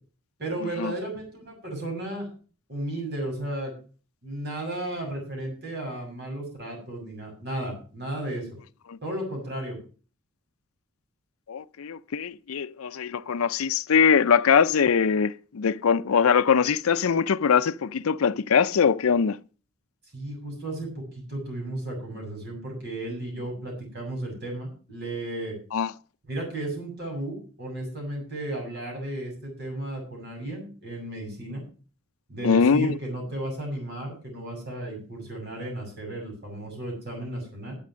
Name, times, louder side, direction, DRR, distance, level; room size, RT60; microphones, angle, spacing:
voice 1, 0.4-2.3 2.7-3.7 4.2-8.5 9.0-9.8 20.1-25.6 26.3-31.6 32.3-37.8, right 1 dB, 50° right, 7.0 m, -34 dB
voice 2, 11.5-19.4 25.7-25.9 32.4-32.9, left 6 dB, 75° left, 0.5 m, -22 dB
11.0 x 8.3 x 6.2 m
head